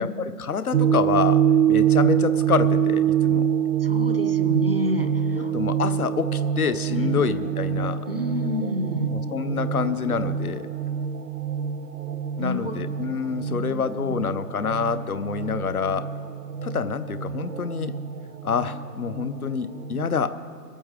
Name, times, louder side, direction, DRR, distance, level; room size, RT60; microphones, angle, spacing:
voice 1, 0.0-3.5 5.3-8.1 9.1-10.7 12.4-16.1 16.6-17.9 18.4-20.4, left 6 dB, 65° left, 13 dB, 0.7 m, -27 dB
sound 1, 0.7-20.1, right 9 dB, 75° right, 0.8 m, -25 dB
voice 2, 3.8-5.5 6.9-7.2 8.1-9.1 12.4-12.8 13.5-14.4, left 1 dB, 40° right, 7 dB, 0.5 m, -30 dB
22.0 x 8.6 x 3.5 m, 2.3 s
figure-of-eight pair, 160°, 48 cm